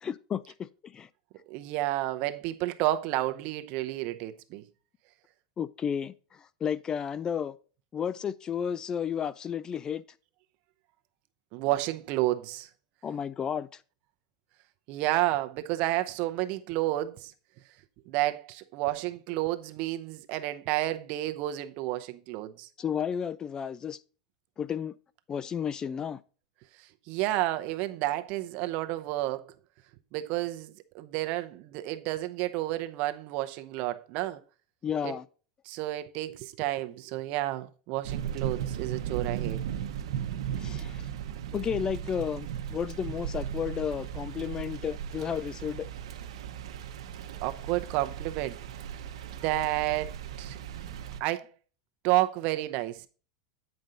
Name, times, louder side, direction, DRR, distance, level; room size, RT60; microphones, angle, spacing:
voice 1, 0.0-1.1 5.6-7.5 7.9-10.0 13.0-13.8 22.8-24.0 24.6-24.9 25.3-26.2 34.8-35.2 40.6-41.1 41.5-45.9, left 8 dB, 25° left, 0.3 m, -32 dB
voice 2, 1.5-4.6 11.5-12.7 14.9-17.3 18.1-22.7 26.8-29.5 30.1-34.4 35.0-35.1 35.6-39.6 47.4-48.6 49.3-50.6 51.2-51.5 52.0-53.1, right 16 dB, 50° right, 0.7 m, -31 dB
sound 1, 38.0-51.2, right 9 dB, 80° right, 0.9 m, -36 dB
8.9 x 5.3 x 3.9 m
supercardioid pair, 135°, 3 cm